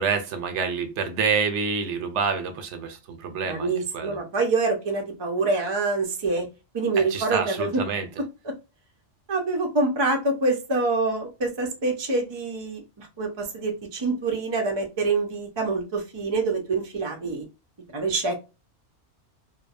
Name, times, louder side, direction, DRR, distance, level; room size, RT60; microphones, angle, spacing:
voice 1, 0.0-4.2 7.0-8.1, right 5 dB, 80° right, 0.9 m, -27 dB
voice 2, 3.5-6.5 6.7-7.8 8.4-8.5 9.3-17.4 17.9-18.4, right 3 dB, 35° right, 0.4 m, -26 dB
2.8 x 2.0 x 2.3 m
omnidirectional pair, 1.2 m